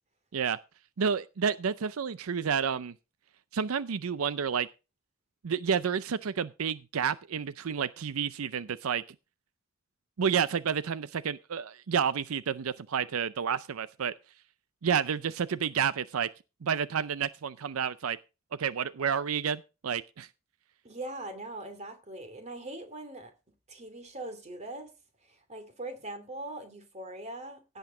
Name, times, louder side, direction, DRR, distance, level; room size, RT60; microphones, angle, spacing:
voice 1, 1.0-2.9 3.5-4.7 5.4-9.0 10.2-14.1 14.8-16.3 16.6-18.2 18.6-20.3, right 7 dB, 90° right, 0.5 m, -30 dB
voice 2, 20.8-23.3 23.7-24.9 25.2-27.8, right 2 dB, 35° right, 2.6 m, -41 dB
16.5 x 8.0 x 3.8 m
head